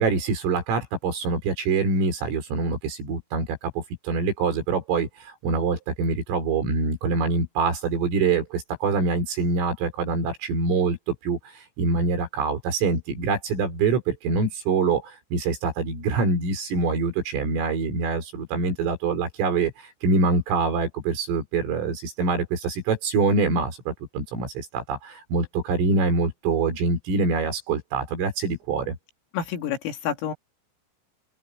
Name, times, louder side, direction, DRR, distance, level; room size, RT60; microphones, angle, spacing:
voice 1, 0.0-11.0 11.2-29.0, right 4 dB, 85° right, 7.5 m, -25 dB
voice 2, 29.3-30.3, left 8 dB, 85° left, 5.4 m, -28 dB
open air
omnidirectional pair, 5.8 m